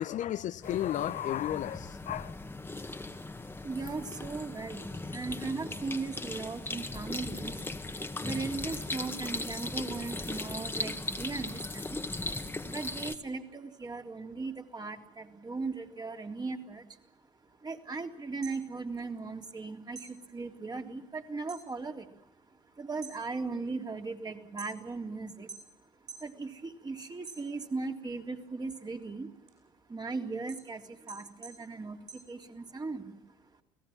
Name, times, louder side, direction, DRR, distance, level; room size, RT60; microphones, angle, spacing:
voice 1, 0.0-2.4, left 12 dB, 50° left, 0.8 m, -33 dB
sound 1, 0.6-13.2, left 2 dB, 15° left, 1.9 m, -38 dB
voice 2, 3.6-7.7 8.1-12.0 12.3-12.4 12.6-17.0 17.6-25.8 26.1-29.3 29.6-33.5, right 3 dB, 25° right, 3.5 m, -38 dB
sound 2, 18.4-19.6 19.9-21.7 22.0-22.5 22.9-25.1 25.5-26.3 26.7-27.9 28.3-32.9, right 4 dB, 45° right, 7.9 m, -49 dB
30.0 x 18.5 x 7.3 m
hypercardioid pair, 60°, 16 cm